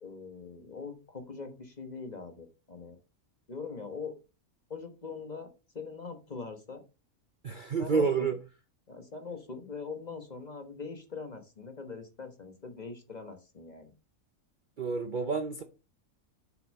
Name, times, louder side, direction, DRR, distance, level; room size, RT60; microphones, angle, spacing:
voice 1, 0.0-3.0 3.5-4.1 4.7-6.8 7.8-8.3 8.9-13.9, left 4 dB, 35° left, 1.2 m, -42 dB
voice 2, 7.4-8.4 14.8-15.6, right 5 dB, 45° right, 0.7 m, -29 dB
6.9 x 6.3 x 4.1 m
omnidirectional pair, 1.5 m